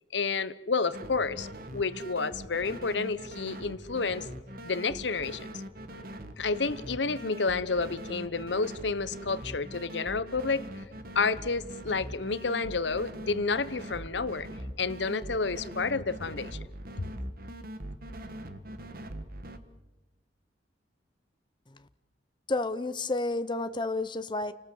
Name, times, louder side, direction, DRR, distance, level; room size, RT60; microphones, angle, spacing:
voice 1, 0.1-4.3 4.6-5.5 6.4-10.7 11.1-14.5 14.8-16.6, left 4 dB, 70° left, 1.0 m, -30 dB
sound 1, 0.9-19.6, right 1 dB, 55° right, 1.8 m, -42 dB
voice 2, 22.5-24.5, left 2 dB, 25° left, 0.8 m, -30 dB
29.5 x 19.0 x 8.0 m
head